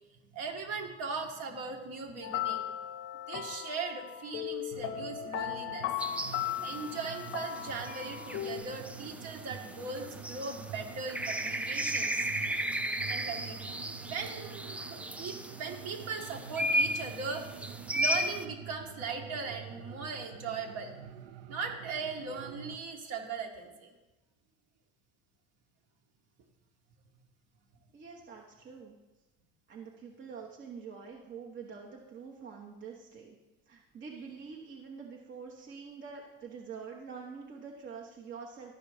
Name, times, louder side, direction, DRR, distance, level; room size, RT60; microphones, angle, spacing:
voice 1, 0.2-2.7 3.3-5.9 6.6-13.7 14.1-20.9 21.5-23.9, right 4 dB, 60° right, 2 dB, 1.8 m, -39 dB
sound 1, 2.2-8.6, left 11 dB, 45° left, 0.6 m, -37 dB
sound 2, 4.7-22.8, right 8 dB, 85° right, 0.6 m, -47 dB
sound 3, 6.0-18.4, equal, 5° right, 0.4 m, -35 dB
voice 2, 27.9-29.0 29.7-33.4 33.7-38.7, right 5 dB, 40° right, -1 dB, 1.2 m, -46 dB
12.5 x 4.9 x 5.0 m, 1.1 s
supercardioid pair, 110°, 29 cm